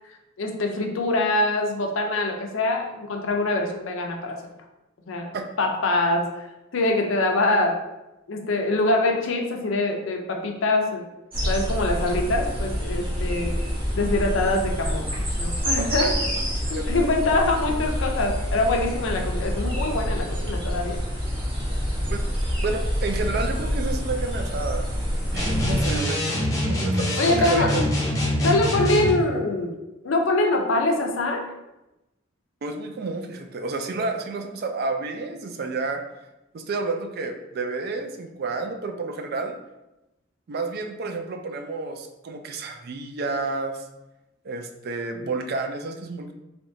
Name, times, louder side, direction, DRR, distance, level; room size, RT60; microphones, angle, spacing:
voice 1, 0.4-4.4 5.1-6.4 6.7-7.8 8.3-11.0 11.5-13.6 13.9-15.1 15.4-16.1 16.7-21.0 27.2-27.8 28.4-29.7 30.0-31.5, left 2 dB, 75° left, 2 dB, 0.5 m, -24 dB
sound 1, 11.3-26.0, equal, 25° right, 1.0 m, -27 dB
voice 2, 15.8-16.2 16.6-16.9 22.1-22.2 22.6-24.9 25.3-27.8 32.6-36.0 36.5-39.6 40.5-43.8 44.4-46.3, right 3 dB, 50° right, 5 dB, 0.4 m, -30 dB
sound 2, 25.4-29.2, left 1 dB, 15° left, 0.6 m, -24 dB
3.4 x 2.9 x 2.6 m, 0.95 s
head